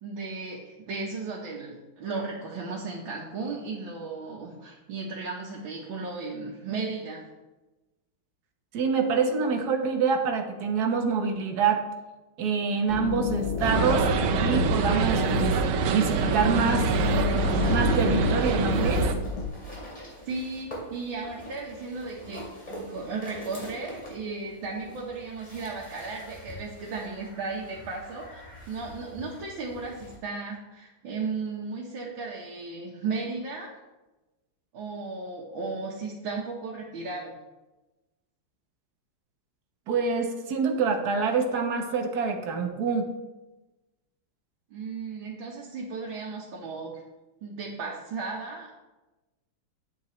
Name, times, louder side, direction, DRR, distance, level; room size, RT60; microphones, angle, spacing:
voice 1, 0.0-7.2 20.3-33.7 34.7-37.4 44.7-47.0 47.4-48.7, right 4 dB, 75° right, -4 dB, 1.9 m, -35 dB
voice 2, 8.7-11.8 12.4-14.1 14.4-15.6 15.9-16.9 17.7-19.1 39.9-43.1, right 5 dB, 55° right, 4 dB, 1.4 m, -26 dB
sound 1, 12.9-19.5, left 6 dB, 70° left, 1.7 m, -30 dB
sound 2, 13.6-19.1, right 6 dB, 90° right, 1.6 m, -26 dB
sound 3, 17.3-30.1, right 1 dB, 20° left, 2.6 m, -40 dB
9.0 x 8.5 x 3.1 m, 1.1 s
omnidirectional pair, 2.2 m